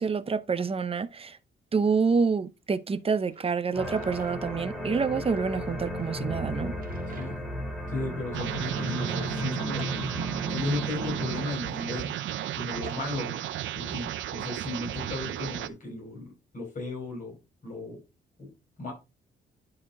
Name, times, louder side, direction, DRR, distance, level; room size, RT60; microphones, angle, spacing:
voice 1, 0.0-1.4 1.7-6.7, right 5 dB, 30° right, 0.7 m, -27 dB
Drawer open or close, 2.3-2.4 3.0-4.4 4.7-4.8 5.9-7.6 8.0-8.1 8.9-10.0 11.2-12.9, right 5 dB, 45° right, 1.8 m, -50 dB
sound 1, 3.7-11.4, equal, ahead, 2.8 m, -35 dB
voice 2, 7.2-7.5 7.9-10.0 10.5-12.1 12.5-13.4 13.7-17.3 17.6-18.0 18.4-18.5 18.8-18.9, left 2 dB, 40° left, 5.0 m, -35 dB
sound 2, 8.3-15.7, right 13 dB, 70° right, 0.6 m, -34 dB
11.0 x 4.4 x 3.6 m
cardioid pair, 90°, 20 cm